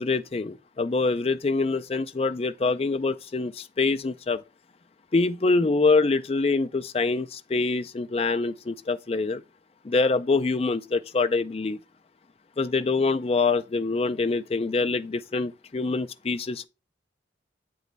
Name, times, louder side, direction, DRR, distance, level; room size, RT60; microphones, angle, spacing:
voice 1, 0.0-4.4 5.1-9.4 9.8-11.8 12.6-16.7, left 3 dB, 30° left, 0.4 m, -25 dB
8.2 x 3.1 x 5.2 m
head